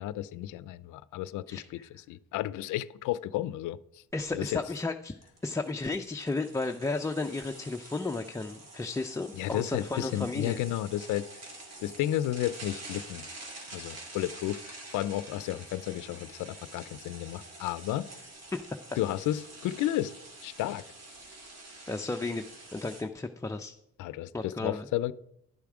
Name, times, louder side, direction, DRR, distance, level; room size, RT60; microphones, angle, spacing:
voice 1, 0.0-1.8 2.1-4.0 4.3-4.6 9.4-11.2 11.8-13.3 13.7-18.1 19.0-20.2 20.4-20.8 24.0-25.1, left 14 dB, 85° left, 0.5 m, -32 dB
voice 2, 1.5-1.9 4.1-5.1 5.4-10.6 18.5-18.6 21.9-22.5 22.7-23.7 24.3-24.9, left 3 dB, 10° left, 0.4 m, -33 dB
sound 1, 4.1-4.2 4.5-4.7 5.2-23.0, right 2 dB, 55° right, 2.5 m, -47 dB
11.0 x 7.0 x 4.8 m
cardioid pair, 90°, 30 cm